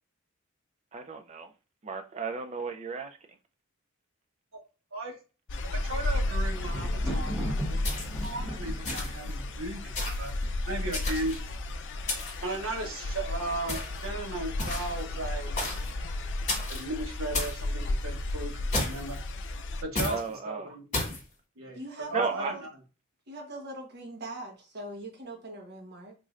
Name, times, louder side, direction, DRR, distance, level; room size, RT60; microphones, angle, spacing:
voice 1, 0.9-1.5 1.8-3.2 20.0-20.8 22.1-22.5, right 5 dB, 30° right, 0.4 m, -34 dB
sound 1, 5.5-19.8, left 2 dB, 60° left, 0.5 m, -33 dB
voice 2, 5.7-7.8 8.2-10.3 10.7-11.3 12.4-15.6 16.7-19.2 19.8-21.2 21.6-21.8 22.1-22.7, right 2 dB, 75° right, 1.1 m, -36 dB
Thunder, 5.8-10.8 11.6-12.1 12.3-12.4, equal, 5° right, 1.0 m, -39 dB
sound 2, 7.8-8.3 8.8-9.3 10.0-10.3 10.9-11.5 12.1-12.5 13.7-14.0 14.6-15.0 15.6-15.9 16.5-16.8 17.3-17.6 18.7-19.2 20.0-20.2 20.9-21.2, left 2 dB, 35° left, 1.9 m, -33 dB
voice 3, 21.7-22.6 23.3-26.1, right 1 dB, 50° right, 1.1 m, -41 dB
3.7 x 3.2 x 2.5 m
head